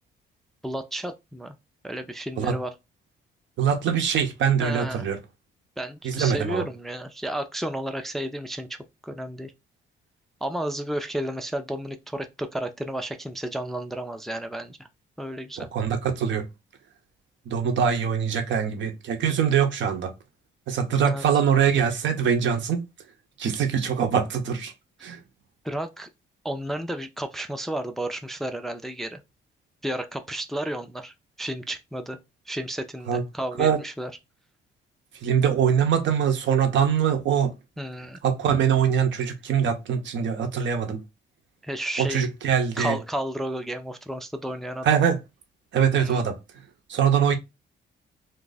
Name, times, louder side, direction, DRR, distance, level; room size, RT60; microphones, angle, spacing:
voice 1, 0.6-1.5 1.8-2.7 4.6-5.1 5.8-8.8 9.0-9.5 10.4-14.8 15.2-15.7 21.0-21.3 25.6-26.1 26.4-29.2 29.8-32.2 32.5-34.1 37.8-38.2 41.6-42.3 42.8-44.9 46.0-46.2, right 1 dB, ahead, 0.4 m, -32 dB
voice 2, 3.6-5.2 6.0-6.6 15.6-16.4 17.5-20.1 20.7-22.8 23.4-24.7 25.0-25.2 33.1-33.2 33.6-33.8 35.2-37.5 38.2-41.0 42.0-43.0 44.8-45.2 45.7-46.4 46.9-47.4, right 7 dB, 70° right, 0.8 m, -23 dB
2.5 x 2.4 x 3.9 m
cardioid pair, 90°, 20 cm